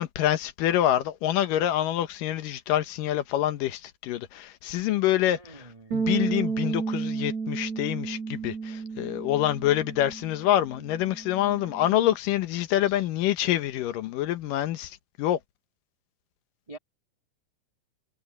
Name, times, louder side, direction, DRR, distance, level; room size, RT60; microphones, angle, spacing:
voice 1, 0.0-5.4 5.9-15.4, left 12 dB, 80° left, 2.7 m, -26 dB
voice 2, 5.3-6.0 11.6-11.7 12.8-13.1 16.7-16.8, right 1 dB, 25° right, 0.7 m, -47 dB
Bass guitar, 5.9-12.2, right 5 dB, 55° right, 5.2 m, -32 dB
omnidirectional pair, 3.8 m